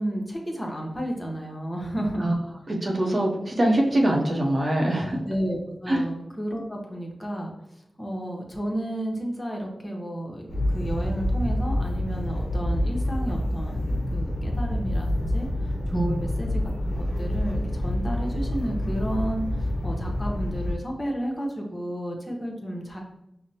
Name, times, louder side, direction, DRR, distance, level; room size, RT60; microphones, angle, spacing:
voice 1, 0.0-2.3 5.3-7.5 8.0-23.0, right 1 dB, 25° left, 0 dB, 0.9 m, -32 dB
voice 2, 2.7-5.2 5.9-6.0 15.9-16.2, right 1 dB, 45° right, 0 dB, 0.7 m, -23 dB
sound 1, 10.5-20.7, left 1 dB, 50° left, 0.6 m, -27 dB
5.0 x 2.1 x 2.8 m, 0.83 s
cardioid pair, 50°, 0 cm